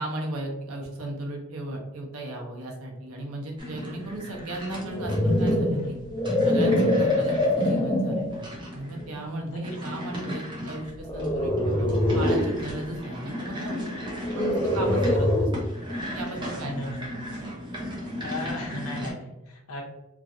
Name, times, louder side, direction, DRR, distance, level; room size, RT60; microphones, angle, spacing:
voice 1, 0.0-6.0 6.4-13.9 14.3-15.5 16.1-17.1, right 1 dB, 80° right, 0 dB, 0.8 m, -36 dB
sound 1, 3.6-19.1, left 1 dB, 20° right, 0.7 m, -36 dB
sound 2, 4.7-8.4 9.0-9.3 11.0-12.6 14.2-15.7, left 1 dB, 20° left, 0.5 m, -24 dB
voice 2, 5.7-6.1 7.2-7.4 9.5-9.9 10.4-10.5 16.3-17.1 18.2-19.8, left 1 dB, 90° left, 0 dB, 0.8 m, -38 dB
3.1 x 2.4 x 2.6 m, 0.96 s
head